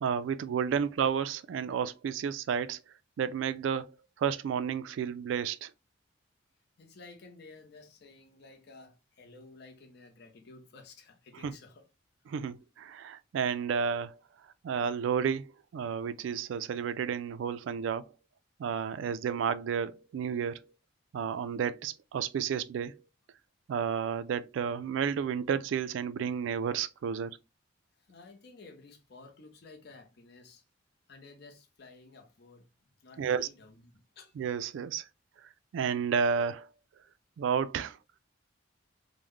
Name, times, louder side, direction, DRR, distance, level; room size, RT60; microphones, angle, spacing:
voice 1, 0.0-2.8 3.2-5.7 11.4-11.5 12.3-14.2 14.6-18.1 18.6-20.7 21.1-23.0 23.7-27.4 33.2-33.5 34.4-35.1 35.7-36.7 37.4-38.0, right 7 dB, 75° right, 0.3 m, -31 dB
voice 2, 6.8-11.9 28.0-30.6 31.1-32.7 33.0-34.3, left 3 dB, 55° left, 0.6 m, -53 dB
3.7 x 2.1 x 3.1 m
head